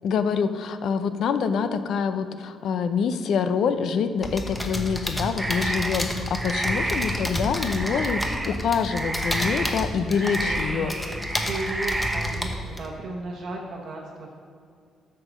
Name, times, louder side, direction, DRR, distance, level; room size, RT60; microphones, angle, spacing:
voice 1, 0.0-10.9, left 6 dB, 70° left, 10 dB, 0.5 m, -26 dB
sound 1, 4.2-12.9, equal, 10° left, 1.0 m, -31 dB
sound 2, 5.4-6.1 6.3-12.4, right 1 dB, 15° right, 0.6 m, -30 dB
voice 2, 10.4-14.4, right 2 dB, 65° right, -2 dB, 1.0 m, -35 dB
7.8 x 5.7 x 6.3 m, 2.2 s
cardioid pair, 90°, 0 cm